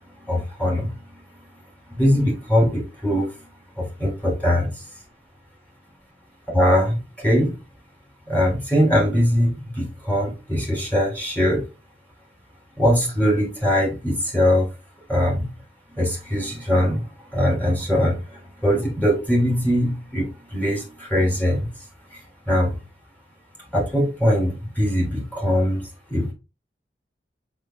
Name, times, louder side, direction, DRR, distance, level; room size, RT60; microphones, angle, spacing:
voice 1, 0.3-0.9 1.9-3.3 3.8-4.7 6.5-7.5 8.3-11.7 12.8-14.7 15.1-15.5 16.0-17.1 17.3-21.7 22.5-22.7 23.7-26.3, equal, 10° left, 3.5 m, -21 dB
6.5 x 5.9 x 2.4 m
head